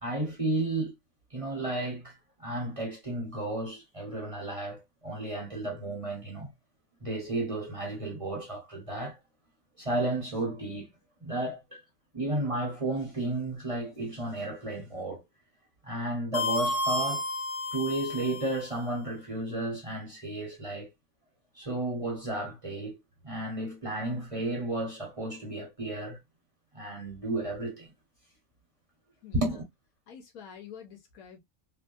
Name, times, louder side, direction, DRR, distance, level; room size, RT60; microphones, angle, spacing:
voice 1, 0.0-0.9 1.3-6.5 7.0-9.2 9.8-10.9 11.2-11.8 12.1-15.2 15.8-17.2 17.7-20.9 21.5-23.0 23.2-26.2 26.7-27.9 29.3-29.6, right 2 dB, 25° right, 0.9 m, -33 dB
sound 1, 16.3-18.7, left 1 dB, 45° left, 0.9 m, -31 dB
voice 2, 29.2-29.6 30.1-31.4, left 7 dB, 80° left, 1.3 m, -47 dB
3.2 x 2.2 x 2.5 m
omnidirectional pair, 1.5 m